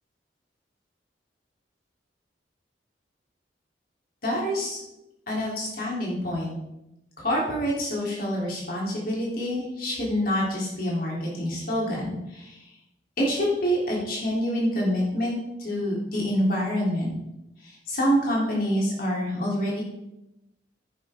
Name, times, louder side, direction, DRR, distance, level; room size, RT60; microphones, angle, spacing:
voice 1, 4.2-4.8 5.3-6.5 7.2-12.6 13.2-17.1 17.6-19.8, equal, 50° left, -4 dB, 3.7 m, -27 dB
10.5 x 10.5 x 3.8 m, 0.91 s
head